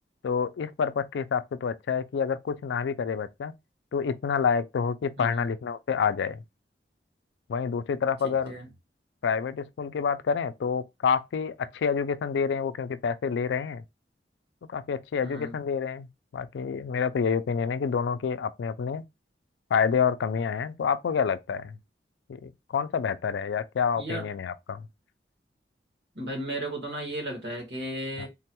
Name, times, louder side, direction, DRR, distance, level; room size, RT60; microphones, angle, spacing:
voice 1, 0.2-3.5 3.9-6.4 7.5-8.5 9.2-13.8 14.7-16.1 16.3-19.0 19.7-21.8 22.3-24.9 28.2-28.3, left 6 dB, 90° left, 0.3 m, -28 dB
voice 2, 5.2-5.5 8.2-8.7 15.2-15.5 24.0-24.3 26.1-28.3, right 1 dB, 75° right, 1.5 m, -35 dB
3.7 x 2.2 x 2.8 m
head